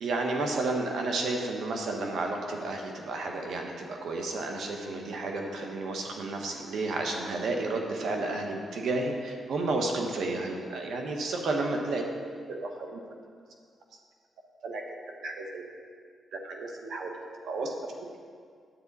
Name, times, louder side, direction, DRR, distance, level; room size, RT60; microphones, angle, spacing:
voice 1, 0.0-12.0 12.5-13.0 14.6-14.8 15.1-15.6 16.3-17.1 17.4-17.7, right 2 dB, 75° right, 2 dB, 1.2 m, -32 dB
9.7 x 8.5 x 4.1 m, 2.1 s
cardioid pair, 80°, 0 cm